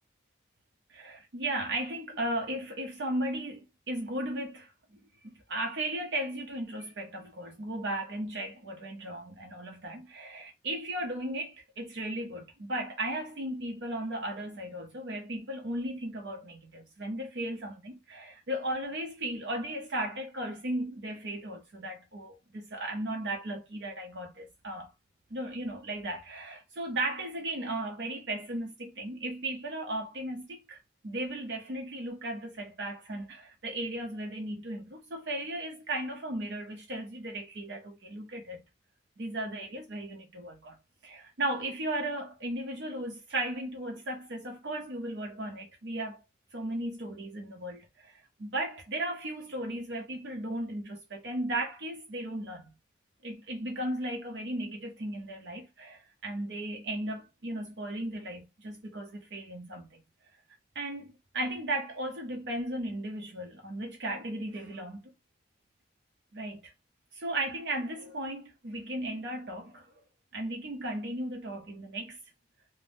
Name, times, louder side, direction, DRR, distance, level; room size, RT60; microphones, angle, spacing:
voice 1, 0.9-4.7 5.2-24.9 25.3-38.6 39.2-40.8 41.0-46.2 46.5-52.7 53.2-60.0 60.7-65.1 66.3-66.7 67.1-69.9 70.3-72.2, right 1 dB, 70° right, 0.6 m, -36 dB
2.6 x 2.0 x 3.3 m
head